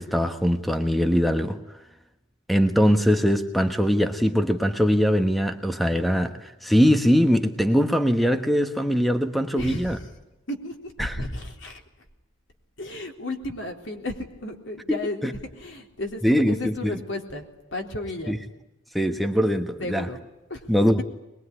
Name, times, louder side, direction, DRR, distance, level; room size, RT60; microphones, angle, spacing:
voice 1, 0.0-1.6 2.5-10.0 11.0-11.3 14.9-15.3 16.2-17.0 18.3-18.4 18.9-20.1 20.7-21.0, equal, ahead, 7 dB, 1.2 m, -22 dB
voice 2, 9.5-10.1 10.5-11.8 12.8-15.2 15.6-17.5 17.7-18.4 19.8-20.2 20.5-20.6, left 1 dB, 65° left, 3 dB, 3.8 m, -33 dB
22.5 x 22.0 x 9.9 m, 0.95 s
head